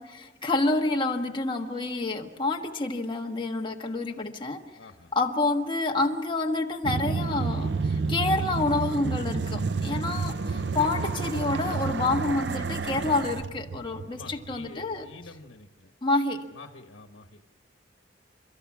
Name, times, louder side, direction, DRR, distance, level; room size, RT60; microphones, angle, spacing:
voice 1, 0.0-4.6 5.1-15.1 16.0-16.5, left 2 dB, 25° left, 3 dB, 1.4 m, -28 dB
voice 2, 4.8-5.1 14.1-15.9 16.5-17.4, left 3 dB, 80° left, 6 dB, 1.3 m, -47 dB
sound 1, 6.8-15.0, right 4 dB, 60° right, 0.6 m, -30 dB
29.0 x 13.5 x 7.4 m, 1.3 s
head